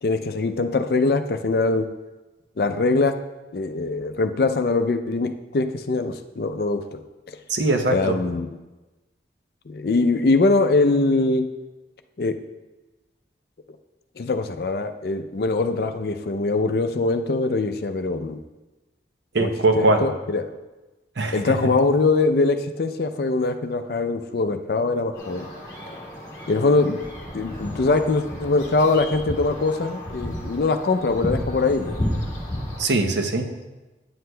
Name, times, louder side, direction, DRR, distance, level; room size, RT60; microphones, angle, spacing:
voice 1, 0.0-1.9 2.6-3.1 3.5-7.0 7.9-8.6 9.7-11.4 12.2-12.3 14.2-18.4 19.4-20.4 21.3-25.5 26.5-27.0 27.3-31.9, left 3 dB, 55° left, 8 dB, 0.4 m, -22 dB
voice 2, 7.5-8.2 19.3-20.1 21.2-21.6 32.8-33.5, right 2 dB, 75° right, 5 dB, 0.7 m, -21 dB
sound 1, 25.1-32.8, left 1 dB, 20° left, 1.4 m, -32 dB
9.3 x 7.7 x 2.2 m, 1.1 s
head